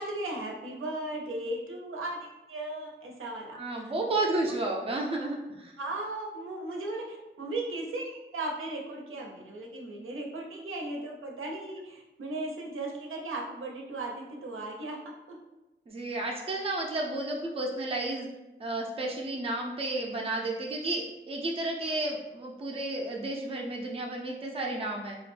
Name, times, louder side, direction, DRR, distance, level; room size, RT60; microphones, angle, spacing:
voice 1, 0.0-3.6 4.2-4.7 5.2-5.3 5.8-15.0 15.3-15.4, right 2 dB, 80° right, 0 dB, 0.5 m, -36 dB
voice 2, 3.5-5.7 15.9-18.3 18.6-25.2, right 2 dB, 30° right, 0 dB, 0.4 m, -32 dB
2.3 x 2.1 x 3.1 m, 1.0 s
wide cardioid pair, 95°, 21 cm